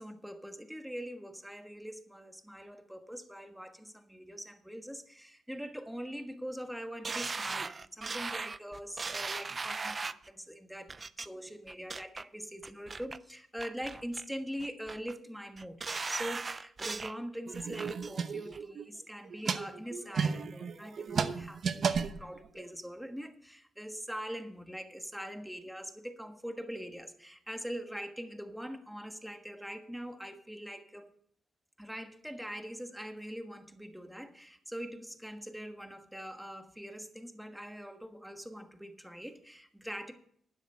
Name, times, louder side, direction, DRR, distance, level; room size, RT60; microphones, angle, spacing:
voice 1, 0.0-15.8 16.1-31.1 31.8-40.1, equal, ahead, 7 dB, 1.3 m, -43 dB
sound 1, 7.0-10.3 10.9-11.3 11.7-12.2 12.6-13.2 13.6-14.3 14.6-15.1 15.6-17.2 17.5-18.1 18.5-18.6, right 4 dB, 30° right, 0.4 m, -38 dB
sound 2, 17.5-18.8 19.2-22.7, right 6 dB, 55° right, 0.9 m, -33 dB
12.0 x 9.8 x 4.4 m, 0.64 s
cardioid pair, 105°, 0 cm